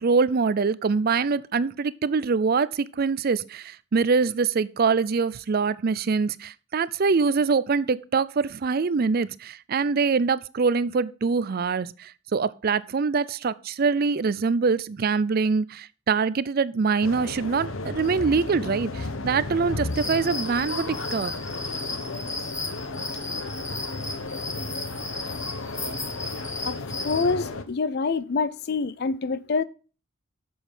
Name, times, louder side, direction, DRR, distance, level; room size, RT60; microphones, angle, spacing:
voice 1, 0.0-21.3, right 5 dB, 45° right, 0.4 m, -24 dB
sound 1, 17.0-27.6, left 2 dB, 75° left, 1.0 m, -34 dB
sound 2, 19.9-27.3, left 2 dB, 15° left, 1.4 m, -35 dB
voice 2, 27.0-29.6, left 4 dB, 50° left, 0.5 m, -26 dB
8.2 x 7.0 x 5.4 m
head